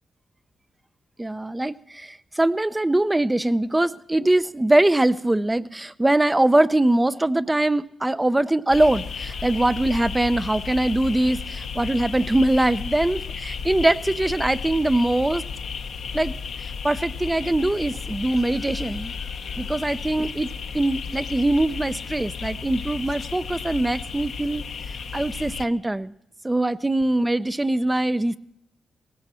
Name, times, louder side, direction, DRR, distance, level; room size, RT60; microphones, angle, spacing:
voice 1, 1.2-15.4 16.1-19.2 19.6-24.6 25.1-26.1 26.4-28.4, right 1 dB, 15° right, 14 dB, 0.6 m, -22 dB
sound 1, 8.7-25.7, left 6 dB, 75° left, 1.1 m, -33 dB
18.5 x 16.5 x 4.3 m, 0.77 s
cardioid pair, 60°, 0 cm